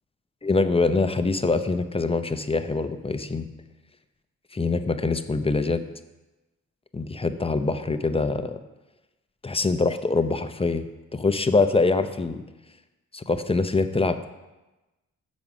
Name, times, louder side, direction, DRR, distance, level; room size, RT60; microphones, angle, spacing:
voice 1, 0.4-3.5 4.5-5.8 6.9-8.6 9.4-10.9 11.1-12.4 13.1-14.3, left 3 dB, 15° left, 9 dB, 0.6 m, -24 dB
7.1 x 5.2 x 5.9 m, 1.1 s
cardioid pair, 60°, 33 cm